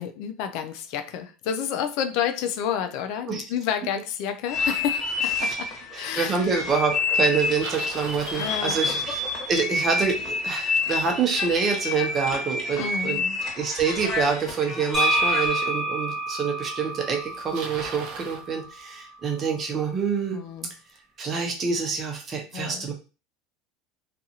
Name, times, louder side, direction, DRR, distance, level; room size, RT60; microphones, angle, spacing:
voice 1, 0.0-5.7 6.0-6.4 8.4-8.8 12.8-13.4 20.3-20.7 22.5-22.9, left 8 dB, 65° left, 8 dB, 0.4 m, -30 dB
sound 1, 4.5-15.7, left 3 dB, 35° left, 1.3 m, -28 dB
voice 2, 5.9-9.2 9.5-13.2 13.6-20.4 21.2-22.9, right 5 dB, 35° right, 3 dB, 0.8 m, -26 dB
Bicycle, 7.2-9.6 14.6-14.7 15.6-15.7 16.7-16.8 17.0-18.5, right 5 dB, 65° right, 0.5 m, -38 dB
sound 2, 14.9-18.7, right 1 dB, 10° right, 1.3 m, -27 dB
2.5 x 2.4 x 2.8 m, 0.32 s
supercardioid pair, 110°, 0 cm